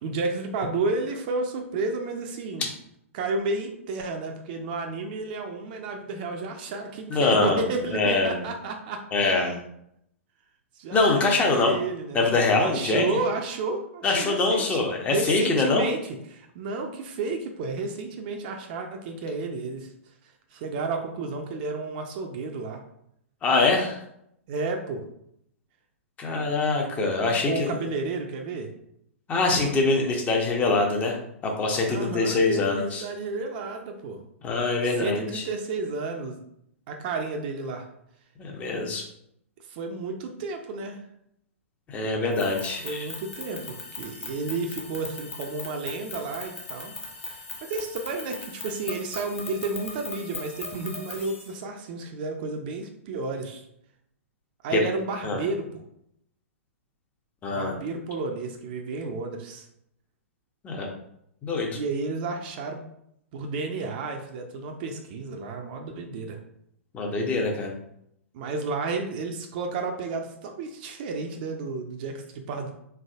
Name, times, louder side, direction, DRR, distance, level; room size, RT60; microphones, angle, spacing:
voice 1, 0.0-2.7 3.1-9.6 10.8-11.3 11.6-12.3 12.6-14.9 15.1-19.9 20.5-22.8 24.5-25.1 27.4-28.7 31.9-34.2 34.8-36.4 36.9-37.9 39.7-41.0 42.8-46.9 47.2-53.6 54.6-55.8 57.5-59.7 61.7-62.8 63.3-66.4 68.3-72.7, right 3 dB, 40° right, 4 dB, 0.5 m, -32 dB
voice 2, 7.1-7.6 7.9-8.4 9.1-9.5 10.9-11.7 12.1-13.0 14.0-15.8 23.4-24.0 26.2-27.7 29.3-31.2 31.4-33.0 34.4-35.4 38.4-39.0 41.9-43.1 54.7-54.8 55.2-55.4 57.4-57.7 60.6-60.9 61.4-61.8 66.9-67.7, left 3 dB, 20° left, 1 dB, 0.7 m, -24 dB
sound 1, 42.3-51.5, left 3 dB, 75° left, 1.0 m, -39 dB
3.7 x 3.4 x 2.4 m, 0.74 s
figure-of-eight pair, 110°, 7 cm